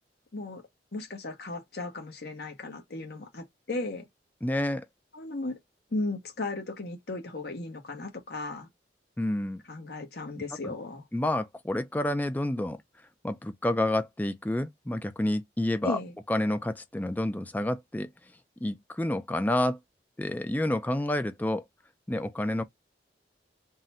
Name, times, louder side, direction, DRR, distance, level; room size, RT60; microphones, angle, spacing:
voice 1, 0.9-4.1 5.1-5.6 5.9-8.7 9.6-11.0 15.8-16.1, left 2 dB, 60° left, 1.0 m, -35 dB
voice 2, 4.4-4.8 9.2-9.6 10.6-10.7 11.1-12.8 13.2-16.0 16.3-18.1 18.6-19.8 20.2-21.6 22.1-22.6, left 1 dB, 10° left, 0.4 m, -29 dB
3.7 x 2.2 x 4.1 m
head